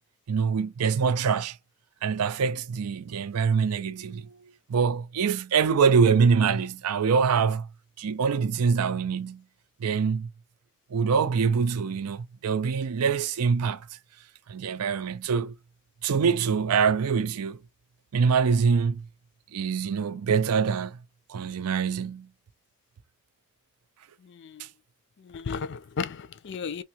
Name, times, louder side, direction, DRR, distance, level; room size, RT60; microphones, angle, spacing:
voice 1, 0.3-1.6 2.0-4.3 4.7-7.7 8.0-9.4 9.8-10.3 10.9-13.9 14.5-15.5 16.0-17.6 18.1-19.1 19.5-21.0 21.3-22.3, right 6 dB, 90° right, 0.5 m, -24 dB
voice 2, 24.2-24.6 25.2-26.8, left 5 dB, 50° left, 0.4 m, -34 dB
3.4 x 2.6 x 2.8 m
head